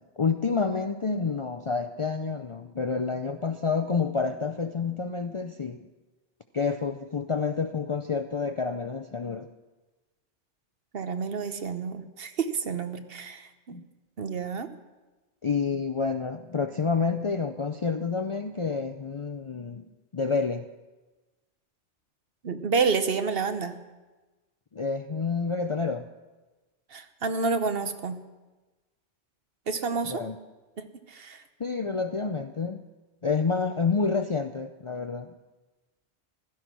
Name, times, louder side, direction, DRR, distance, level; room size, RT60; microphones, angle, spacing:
voice 1, 0.2-5.9 6.5-9.5 13.7-13.9 15.4-19.9 20.1-20.7 24.7-26.1 30.0-30.4 31.6-32.8 33.2-35.3, left 5 dB, 40° left, 7 dB, 0.4 m, -28 dB
voice 2, 10.9-13.8 14.2-14.7 22.4-23.8 26.9-28.2 29.7-30.2 30.8-31.4, right 5 dB, 55° right, 9 dB, 1.1 m, -29 dB
16.0 x 12.0 x 6.1 m, 1.2 s
omnidirectional pair, 1.2 m